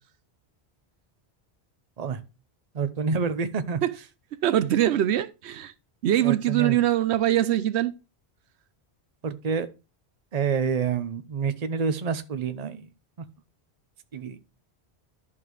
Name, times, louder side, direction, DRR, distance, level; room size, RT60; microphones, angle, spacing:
voice 1, 2.7-3.8 6.2-6.8 9.2-9.7 10.3-12.9 14.1-14.4, right 6 dB, 40° right, 0.8 m, -27 dB
voice 2, 4.4-5.7 6.0-7.9, right 12 dB, 80° right, 0.9 m, -23 dB
11.5 x 5.6 x 3.1 m
omnidirectional pair, 1.1 m